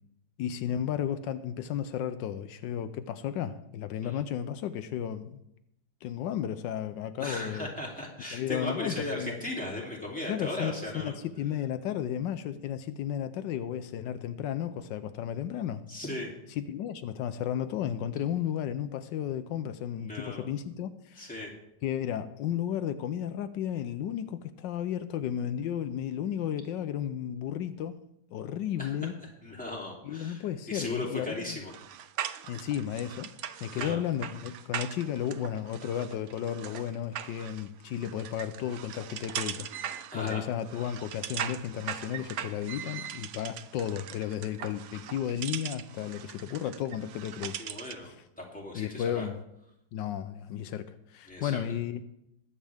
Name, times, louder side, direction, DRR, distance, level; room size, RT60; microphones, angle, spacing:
voice 1, 0.4-5.4 6.0-7.7 8.3-9.4 10.3-15.8 16.5-21.3 21.8-28.0 28.3-29.1 30.0-31.6 32.4-33.3 33.6-47.6 48.1-48.2 48.7-49.4 49.9-52.0, left 10 dB, 80° left, 11 dB, 1.3 m, -33 dB
voice 2, 7.2-11.1 15.9-16.3 20.0-20.5 21.2-21.5 28.8-28.9 29.4-31.7 32.2-32.3 33.7-34.0 40.1-40.4 47.6-49.3 51.3-51.6, left 1 dB, 5° left, -3 dB, 2.8 m, -37 dB
sound 1, 31.7-48.1, right 10 dB, 90° right, 0.6 m, -40 dB
20.5 x 8.5 x 3.5 m, 0.81 s
omnidirectional pair, 1.9 m